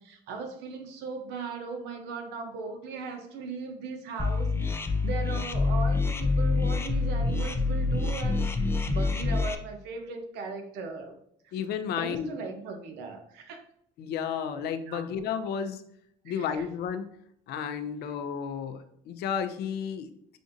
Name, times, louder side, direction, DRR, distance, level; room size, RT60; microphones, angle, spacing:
voice 1, 0.0-11.1 11.4-11.5 12.0-13.6 14.9-15.1 16.2-16.7, right 4 dB, 85° right, 4 dB, 0.8 m, -38 dB
sound 1, 4.2-9.6, left 3 dB, 15° left, 0.4 m, -26 dB
voice 2, 11.5-12.4 14.0-15.8 16.2-17.1 17.5-20.4, left 7 dB, 75° left, 10 dB, 0.5 m, -32 dB
5.9 x 2.5 x 2.6 m, 0.69 s
cardioid pair, 110°, 17 cm